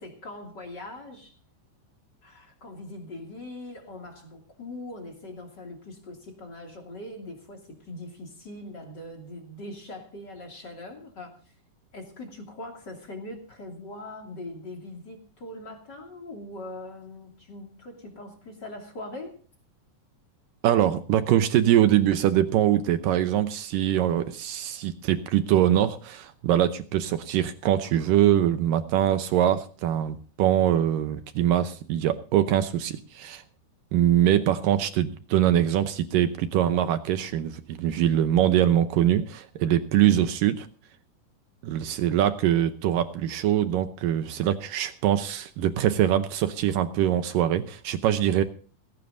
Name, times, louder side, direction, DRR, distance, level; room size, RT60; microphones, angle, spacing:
voice 1, 0.0-1.4 2.2-11.5 11.9-19.4, left 1 dB, 30° left, 2.4 m, -41 dB
voice 2, 20.6-33.4 33.9-40.7 41.6-48.4, right 11 dB, 85° right, 1.9 m, -23 dB
19.0 x 16.5 x 2.7 m
omnidirectional pair, 5.0 m